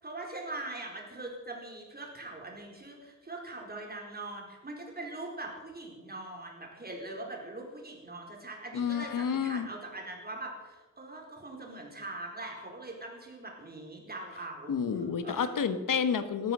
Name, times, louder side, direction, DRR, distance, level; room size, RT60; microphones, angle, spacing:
voice 1, 0.0-15.5, right 2 dB, 30° right, 0 dB, 4.5 m, -42 dB
voice 2, 8.7-9.7 14.7-16.5, left 7 dB, 85° left, 11 dB, 1.3 m, -30 dB
18.0 x 13.0 x 6.1 m, 1.2 s
wide cardioid pair, 100°, 32 cm